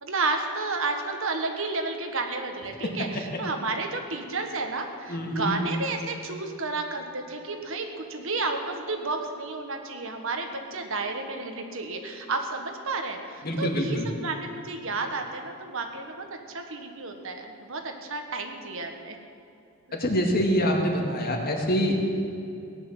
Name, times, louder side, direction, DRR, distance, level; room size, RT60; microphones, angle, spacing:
voice 1, 0.0-19.2, right 3 dB, 60° right, 4 dB, 1.6 m, -32 dB
voice 2, 5.1-5.5 13.4-14.1 19.9-22.0, equal, 45° left, 1 dB, 2.2 m, -25 dB
17.5 x 11.0 x 7.5 m, 2.7 s
head